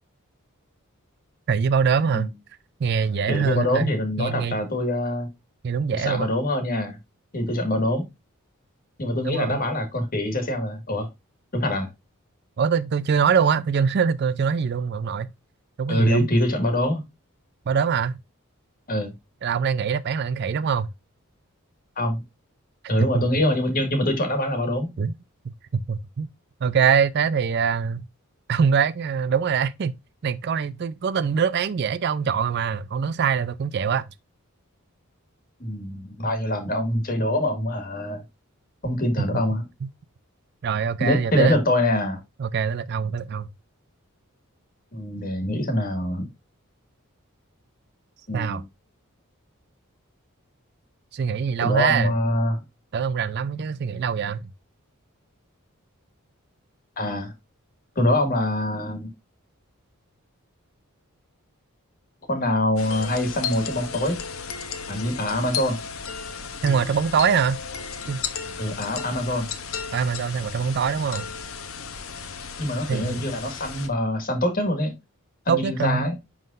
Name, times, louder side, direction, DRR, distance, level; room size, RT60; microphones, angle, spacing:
voice 1, 1.5-2.3 2.8-3.9 4.2-4.6 5.6-6.3 9.2-9.6 12.6-15.3 15.8-16.3 17.7-18.2 19.4-20.9 23.1-23.2 25.0-25.1 25.4-26.3 26.6-28.0 28.5-29.9 30.2-34.0 40.6-41.6 42.4-43.5 48.3-48.6 51.1-52.1 52.9-54.4 66.6-67.6 68.1-68.2 69.9-71.3 72.9-73.2 75.5-76.1, right 6 dB, 50° right, 0.4 m, -23 dB
voice 2, 3.3-5.3 5.9-7.0 7.3-8.1 9.0-11.1 11.5-11.9 15.9-17.0 18.9-19.1 22.0-22.2 22.9-24.9 35.6-38.2 38.8-39.6 41.0-42.2 44.9-46.3 48.3-48.6 51.6-52.6 57.0-57.3 58.0-59.1 62.3-64.2 64.9-65.8 68.6-69.5 72.6-74.9 75.5-76.2, left 1 dB, 40° left, 1.7 m, -24 dB
sound 1, 62.8-73.9, left 6 dB, 70° left, 0.9 m, -34 dB
11.0 x 3.8 x 2.5 m
head